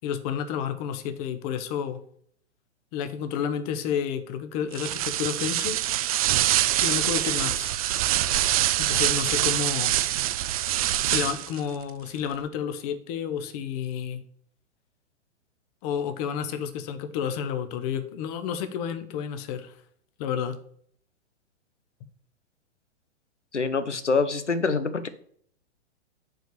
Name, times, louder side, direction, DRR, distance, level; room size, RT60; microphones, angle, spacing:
voice 1, 0.0-2.0 2.9-5.8 6.8-7.7 8.8-9.9 11.0-14.2 15.8-19.7 20.2-20.6, left 8 dB, 35° left, 11 dB, 1.0 m, -30 dB
sound 1, 4.7-11.6, right 13 dB, 35° right, 0.4 m, -25 dB
voice 2, 23.5-25.1, left 4 dB, 85° left, 12 dB, 1.0 m, -25 dB
7.8 x 4.6 x 6.7 m, 0.63 s
figure-of-eight pair, 110°, 35 cm